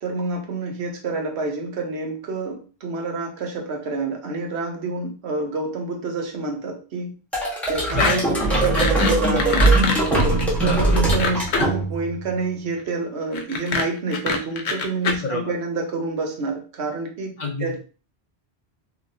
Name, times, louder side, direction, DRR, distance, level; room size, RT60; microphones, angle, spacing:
voice 1, 0.0-7.1 7.7-9.8 10.6-17.3 17.6-17.8, right 3 dB, 80° right, 3 dB, 1.0 m, -28 dB
sound 1, 7.3-12.2, right 2 dB, ahead, 0.9 m, -21 dB
sound 2, 7.9-8.1 8.4-11.8 13.3-15.1, left 4 dB, 90° left, 0.9 m, -24 dB
voice 2, 8.0-8.4 10.6-11.0 15.2-15.5 17.4-17.8, left 3 dB, 50° left, 0 dB, 0.6 m, -27 dB
2.9 x 2.8 x 2.5 m, 0.36 s
omnidirectional pair, 1.1 m